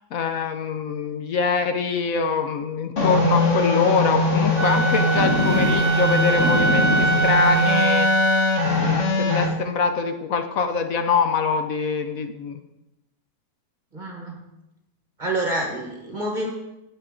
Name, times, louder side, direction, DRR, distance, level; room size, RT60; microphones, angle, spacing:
voice 1, 0.0-8.1 8.8-12.6, left 5 dB, 65° left, 7 dB, 1.0 m, -24 dB
sound 1, 3.0-9.5, left 2 dB, 45° left, 1.6 m, -21 dB
Wind instrument woodwind instrument, 4.6-8.7, right 3 dB, 75° right, 1.3 m, -23 dB
voice 2, 13.9-14.4 15.2-16.5, right 1 dB, 30° right, 0 dB, 1.4 m, -27 dB
17.0 x 5.7 x 3.7 m, 0.92 s
omnidirectional pair, 1.8 m